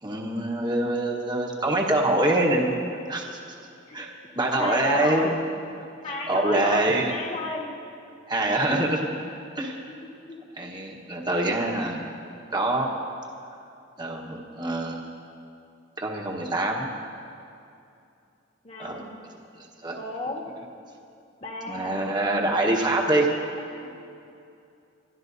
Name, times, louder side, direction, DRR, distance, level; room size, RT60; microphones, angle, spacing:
voice 1, 0.0-3.4 3.9-5.3 6.3-7.1 8.3-9.1 9.6-9.8 10.6-12.0 12.5-12.9 14.0-15.0 16.0-16.9 18.8-19.0 19.6-20.0 21.7-23.3, right 1 dB, 25° right, 0 dB, 1.3 m, -25 dB
voice 2, 4.5-5.3 6.0-7.7 10.2-10.4 18.6-19.1 19.9-20.4 21.4-22.0 23.6-23.9, left 2 dB, 35° left, -1 dB, 1.7 m, -33 dB
26.5 x 13.0 x 2.7 m, 2.6 s
head